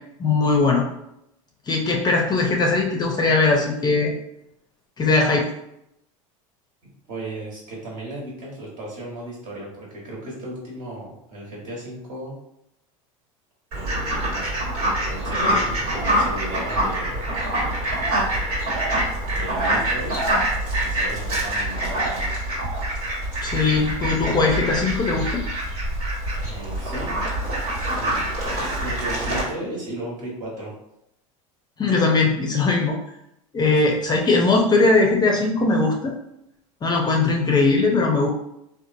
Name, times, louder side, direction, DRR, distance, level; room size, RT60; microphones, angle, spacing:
voice 1, 0.2-0.9 1.7-4.1 5.0-5.5 23.4-25.4 31.8-33.0 33.5-36.1 36.8-38.3, left 3 dB, 25° left, 0 dB, 0.5 m, -20 dB
voice 2, 7.1-12.4 13.7-14.4 15.1-17.2 19.3-20.2 20.8-22.3 26.4-27.2 28.0-28.4 28.8-30.7 33.7-34.0, right 1 dB, 45° right, -4 dB, 1.3 m, -35 dB
Fowl, 13.7-29.4, right 1 dB, 80° right, 1.4 m, -25 dB
2.9 x 2.2 x 2.6 m, 0.81 s
hypercardioid pair, 95°, 18 cm